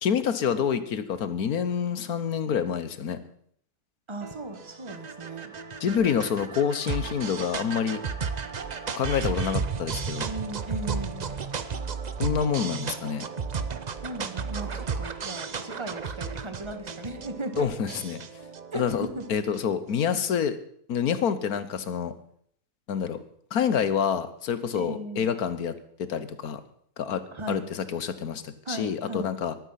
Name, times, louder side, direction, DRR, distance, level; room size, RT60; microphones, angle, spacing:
voice 1, 0.0-3.2 5.8-8.0 8.9-10.3 12.2-13.2 17.6-18.2 18.7-20.6 20.9-22.1 22.9-23.2 23.5-25.7 26.0-26.6 27.0-29.6, left 7 dB, 75° left, 13 dB, 1.6 m, -27 dB
voice 2, 4.1-5.5 10.2-11.3 14.0-17.7 18.7-19.4 24.7-25.3 27.3-27.7 28.6-29.4, right 2 dB, 20° right, 8 dB, 1.5 m, -37 dB
sound 1, 4.2-19.7, right 5 dB, 40° right, 0.6 m, -34 dB
14.0 x 12.0 x 5.8 m, 0.64 s
omnidirectional pair, 1.6 m